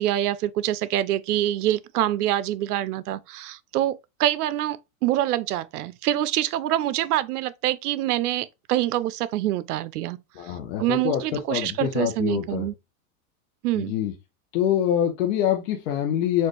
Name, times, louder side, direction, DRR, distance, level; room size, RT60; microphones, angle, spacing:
voice 1, 0.0-10.2 10.4-12.7 13.6-13.9, right 13 dB, 85° right, 0.5 m, -25 dB
voice 2, 10.4-12.7 13.8-14.1 14.5-16.5, left 10 dB, 60° left, 0.9 m, -25 dB
4.4 x 2.4 x 3.1 m
supercardioid pair, 145°, 44 cm